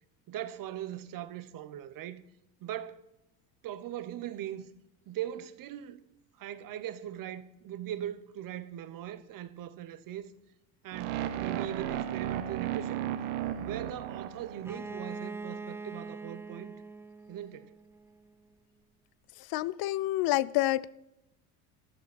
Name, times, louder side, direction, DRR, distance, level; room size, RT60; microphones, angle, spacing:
voice 1, 0.3-2.2 2.6-3.0 3.6-4.7 5.1-6.0 6.4-10.3 10.8-13.0 13.6-16.8 17.3-17.7, right 11 dB, 50° right, 1.1 m, -40 dB
sound 1, 10.9-15.0, right 11 dB, 80° right, 1.3 m, -34 dB
Bowed string instrument, 14.6-18.3, right 3 dB, 5° right, 0.3 m, -43 dB
voice 2, 19.5-20.9, left 16 dB, 55° left, 0.6 m, -28 dB
15.0 x 11.0 x 4.3 m
supercardioid pair, 90°, 44 cm